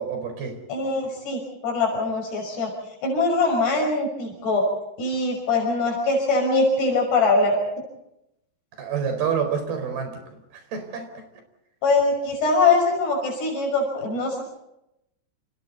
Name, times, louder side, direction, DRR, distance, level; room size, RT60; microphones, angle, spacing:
voice 1, 0.0-0.6 8.8-11.3, right 7 dB, 65° right, 6 dB, 6.3 m, -28 dB
voice 2, 0.7-2.7 3.0-4.7 5.0-7.6 11.8-14.4, left 3 dB, 75° left, 1 dB, 7.8 m, -22 dB
30.0 x 28.0 x 4.1 m, 0.85 s
omnidirectional pair, 4.8 m